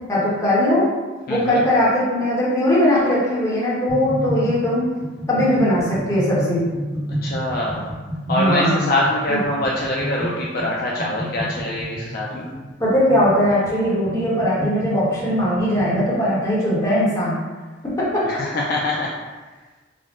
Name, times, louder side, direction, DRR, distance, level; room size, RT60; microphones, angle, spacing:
voice 1, 0.1-0.9 1.3-4.8 5.3-6.6 8.3-8.9 9.3-9.4 12.8-17.4 18.0-18.2, left 1 dB, 15° left, -9 dB, 1.0 m, -19 dB
voice 2, 1.3-1.6 7.2-7.9 8.3-12.5 18.2-19.1, left 1 dB, 50° left, -4 dB, 0.4 m, -24 dB
sound 1, 3.9-16.1, equal, 35° right, 0.9 m, -31 dB
3.6 x 2.1 x 3.7 m, 1.3 s
head